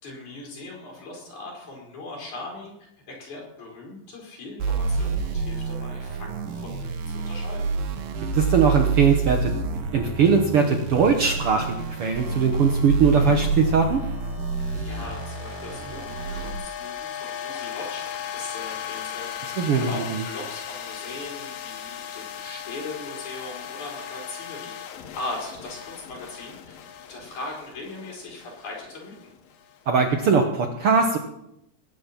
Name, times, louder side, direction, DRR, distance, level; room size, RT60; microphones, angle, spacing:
voice 1, 0.0-2.7 3.1-7.7 14.8-19.3 19.8-24.7 25.2-26.6 27.0-29.1, left 2 dB, 55° left, -2 dB, 5.8 m, -39 dB
sound 1, 4.6-16.5, right 4 dB, 75° right, 3.2 m, -28 dB
voice 2, 8.3-14.0 19.4-20.2 29.9-31.2, right 5 dB, 90° right, 5 dB, 1.2 m, -21 dB
sound 2, 11.8-30.1, left 9 dB, 75° left, 3.0 m, -38 dB
20.0 x 9.4 x 5.8 m, 0.82 s
omnidirectional pair, 4.2 m